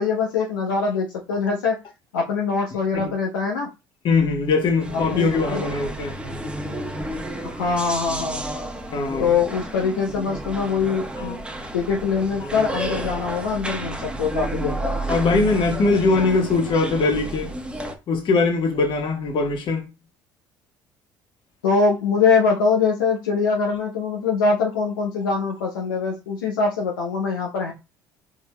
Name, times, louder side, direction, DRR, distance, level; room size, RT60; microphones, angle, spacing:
voice 1, 0.0-1.8 2.1-3.7 4.9-5.9 7.4-8.4 9.2-11.4 11.7-14.9 21.6-27.7, left 5 dB, 90° left, 0.7 m, -23 dB
voice 2, 4.0-6.2 8.9-9.3 11.2-11.3 15.1-17.6 18.1-19.9, left 3 dB, 50° left, 1.4 m, -21 dB
sound 1, 4.8-17.9, right 1 dB, 10° right, 1.0 m, -31 dB
4.4 x 3.7 x 2.2 m
hypercardioid pair, 65°, 11 cm